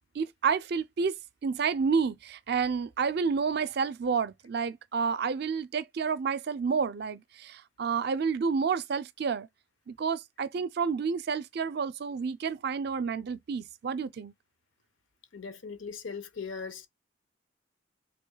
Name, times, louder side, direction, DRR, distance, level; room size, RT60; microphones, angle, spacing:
voice 1, 0.1-1.2 1.4-9.5 9.9-14.3, right 5 dB, 55° right, 0.4 m, -30 dB
voice 2, 15.3-16.9, left 5 dB, 90° left, 0.8 m, -39 dB
3.4 x 2.9 x 3.8 m
head